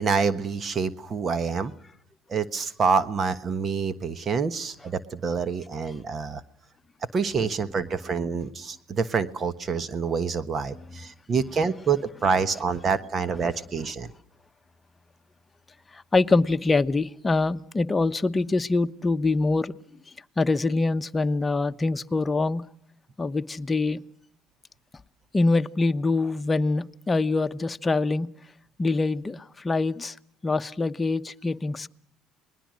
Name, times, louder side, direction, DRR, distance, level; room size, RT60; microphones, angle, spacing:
voice 1, 0.0-1.7 2.3-6.4 7.1-14.1, right 5 dB, 40° right, 14 dB, 1.3 m, -27 dB
voice 2, 15.9-19.7 20.4-22.6 23.2-24.0 25.3-28.3 28.8-30.2 30.4-31.9, left 3 dB, 20° left, 10 dB, 1.0 m, -24 dB
28.5 x 21.0 x 6.4 m, 0.66 s
supercardioid pair, 75°, 0 cm